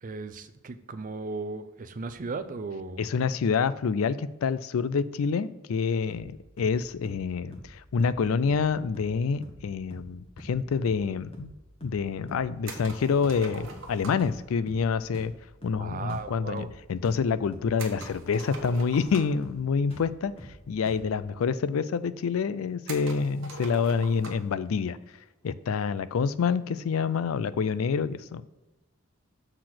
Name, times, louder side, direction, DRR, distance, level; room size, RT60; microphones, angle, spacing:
voice 1, 0.0-3.0 15.8-16.7, right 3 dB, 40° right, 11 dB, 0.5 m, -36 dB
voice 2, 3.0-11.5 11.8-15.3 15.6-20.3 20.7-25.0 25.4-28.4, left 5 dB, 75° left, 16 dB, 0.4 m, -27 dB
sound 1, 6.1-6.3 6.6-6.8 7.0-7.3 7.5-7.7 8.0-8.2 8.5-8.7 8.9-9.2 9.4-9.6 9.9-10.1 10.4-10.6 10.9-11.1 11.3-11.6 11.8-12.0 12.3-12.5 12.8-13.0 13.2-13.9 14.2-14.4 14.7-14.9 15.1-15.4 15.6-15.8 16.1-16.3 16.6-16.8 17.0-17.3 17.5-17.7 18.0-18.2 18.5-18.7 19.0-19.2 19.4-19.6 19.9-20.1 20.4-20.6 20.9-21.1, equal, 30° left, 1.3 m, -45 dB
sound 2, 12.6-14.4 17.8-19.5 20.6-20.7 20.9-21.0 21.8-21.9 22.9-24.5, right 3 dB, 65° right, 1.2 m, -42 dB
6.6 x 4.0 x 5.9 m, 1.1 s
head